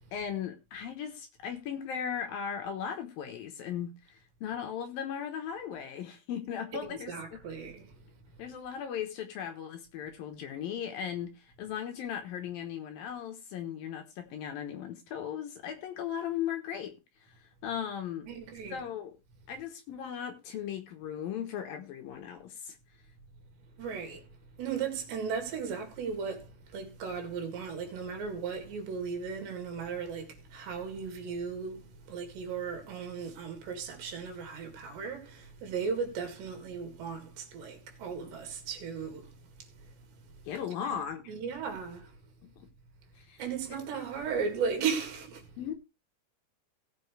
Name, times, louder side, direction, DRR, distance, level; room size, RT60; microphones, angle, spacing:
voice 1, 0.1-7.2 8.4-17.0 17.6-18.3 18.7-19.1 19.5-22.8 40.5-41.2 42.4-42.7 43.2-43.4 45.6-45.7, left 8 dB, 70° left, 2.6 m, -37 dB
voice 2, 6.8-8.4 18.3-18.8 23.8-24.3 24.6-40.1 40.3-40.4 40.8-41.0 41.3-42.2 43.4-45.6, right 6 dB, 80° right, 4.4 m, -36 dB
17.0 x 7.6 x 3.3 m
omnidirectional pair, 5.0 m